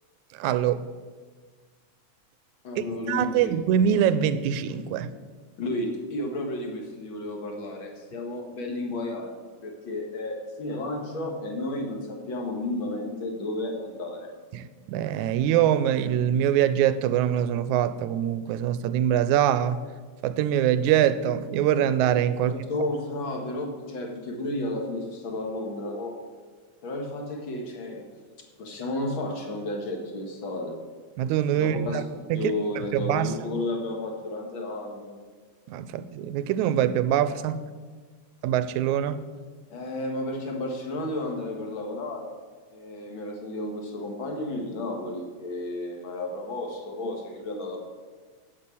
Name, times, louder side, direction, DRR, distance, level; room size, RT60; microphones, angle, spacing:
voice 1, 0.3-0.9 2.8-5.1 14.5-19.8 20.2-22.7 31.2-32.0 32.3-33.6 35.7-37.6 38.4-39.2, right 10 dB, 85° right, 13 dB, 2.0 m, -24 dB
voice 2, 2.6-3.6 5.6-14.3 22.4-26.2 26.8-28.1 28.6-30.8 31.6-32.1 32.3-35.1 39.7-42.3 42.7-47.8, left 2 dB, 50° left, 2 dB, 2.1 m, -32 dB
9.0 x 8.6 x 8.3 m, 1.5 s
omnidirectional pair, 3.3 m